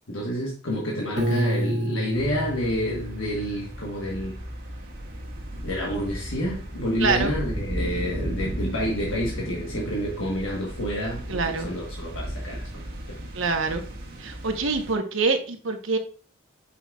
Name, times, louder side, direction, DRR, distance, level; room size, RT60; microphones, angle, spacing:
voice 1, 0.1-4.4 5.6-12.8, equal, 80° left, 1.3 m, -29 dB
Piano, 1.2-4.1, equal, 35° right, 1.9 m, -28 dB
sound 1, 2.1-14.9, right 1 dB, 50° right, 1.7 m, -35 dB
voice 2, 7.0-7.3 11.3-11.7 13.3-13.8 14.2-16.0, right 4 dB, 75° right, 1.0 m, -25 dB
7.9 x 5.8 x 2.3 m
head